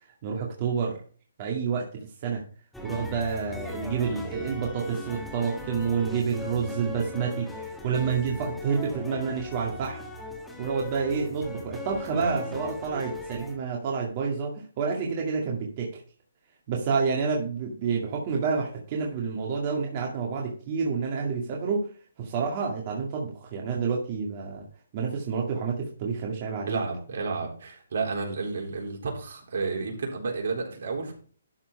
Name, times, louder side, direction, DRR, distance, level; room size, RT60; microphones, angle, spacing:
voice 1, 0.2-1.0 1.4-1.9 2.2-2.4 2.8-10.0 10.6-16.0 16.7-21.9 22.2-24.6 24.9-26.8, right 5 dB, 35° right, -1 dB, 2.1 m, -29 dB
sound 1, 2.7-13.6, left 2 dB, ahead, 1.6 m, -39 dB
voice 2, 12.1-12.5 26.7-31.1, right 4 dB, 65° right, 1 dB, 3.8 m, -31 dB
12.5 x 4.5 x 5.5 m, 0.41 s
hypercardioid pair, 155°, 0 cm